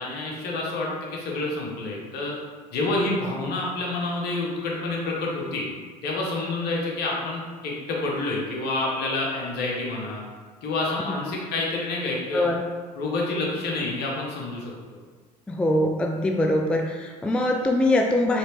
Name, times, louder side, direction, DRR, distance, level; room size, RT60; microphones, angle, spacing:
voice 1, 0.0-2.4 2.7-5.6 6.0-10.2 10.6-12.5 13.0-15.0, left 2 dB, 55° left, -3 dB, 1.2 m, -28 dB
voice 2, 15.5-18.4, left 1 dB, 5° left, 2 dB, 0.3 m, -23 dB
4.7 x 3.3 x 3.1 m, 1.5 s
figure-of-eight pair, 65°, 21 cm